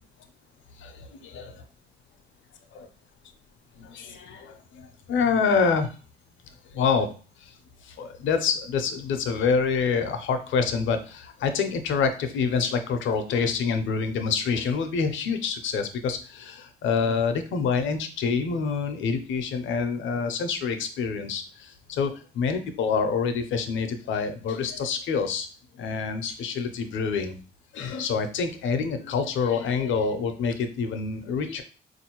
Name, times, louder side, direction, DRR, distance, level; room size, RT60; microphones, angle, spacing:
voice 1, 0.8-1.6 2.7-2.9 3.8-5.9 6.7-7.1 7.4-7.5 7.8-25.5 25.8-27.4 27.7-31.6, left 5 dB, 75° left, 8 dB, 0.6 m, -27 dB
3.9 x 2.6 x 2.9 m, 0.37 s
cardioid pair, 90°, 20 cm